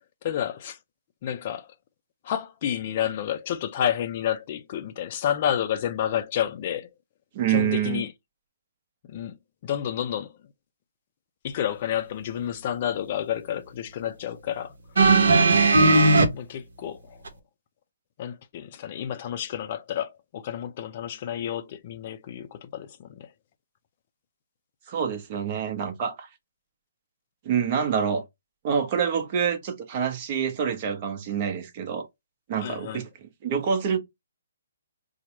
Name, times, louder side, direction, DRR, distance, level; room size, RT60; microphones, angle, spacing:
voice 1, 0.2-0.8 1.2-1.7 2.2-6.9 7.5-8.1 9.1-9.4 9.6-10.3 11.4-14.7 16.3-17.2 18.2-23.3 32.5-33.0, left 10 dB, 40° left, 0.4 m, -30 dB
voice 2, 7.3-8.0 24.9-26.3 27.4-28.2 28.6-32.1 32.5-34.0, right 7 dB, 40° right, 0.8 m, -27 dB
sound 1, 15.0-16.3 17.3-17.4, right 3 dB, 70° right, 0.8 m, -17 dB
4.3 x 2.1 x 2.9 m
hypercardioid pair, 140°, 0 cm